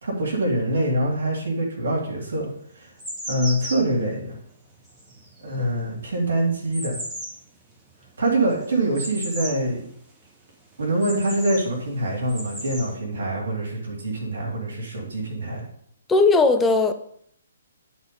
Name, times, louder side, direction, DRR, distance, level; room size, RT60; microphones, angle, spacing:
voice 1, 0.0-2.5 2.7-2.9 3.3-4.4 5.4-7.0 8.2-9.9 10.8-15.6, right 1 dB, 60° right, -1 dB, 2.9 m, -25 dB
sound 1, 1.9-2.0 2.6-9.7 10.0-10.1 10.5-11.7 12.2-12.9, right 1 dB, 10° right, 1.7 m, -36 dB
voice 2, 16.1-16.9, left 3 dB, 10° left, 7 dB, 0.6 m, -17 dB
10.5 x 4.3 x 5.3 m, 0.66 s
figure-of-eight pair, 130°, 0 cm